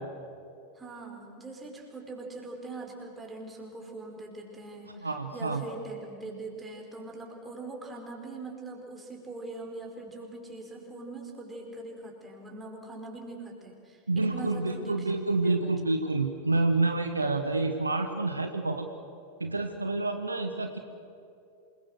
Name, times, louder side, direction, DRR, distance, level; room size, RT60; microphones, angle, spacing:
voice 1, 0.8-15.6, right 2 dB, 15° right, 0 dB, 5.1 m, -42 dB
voice 2, 5.0-5.6 14.1-18.9 19.4-20.8, right 2 dB, 80° right, 6 dB, 1.5 m, -28 dB
27.5 x 21.5 x 6.6 m, 2.5 s
figure-of-eight pair, 90°, 0 cm